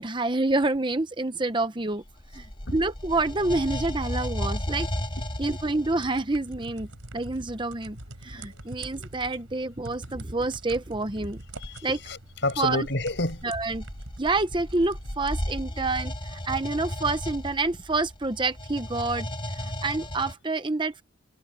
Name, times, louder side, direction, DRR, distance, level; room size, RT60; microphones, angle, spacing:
voice 1, 0.0-2.0 2.3-2.5 2.7-4.9 5.4-6.9 7.1-8.0 8.2-11.4 11.8-12.0 12.6-12.9 13.4-13.8 14.2-19.3 19.5-21.0, right 2 dB, 25° right, 0.9 m, -28 dB
sound 1, 2.1-6.2 11.5-11.8 12.6-20.3, equal, 25° left, 3.5 m, -34 dB
sound 2, 5.4-15.5, right 1 dB, 90° right, 4.6 m, -45 dB
voice 2, 11.6-13.5, left 2 dB, 60° left, 6.2 m, -30 dB
head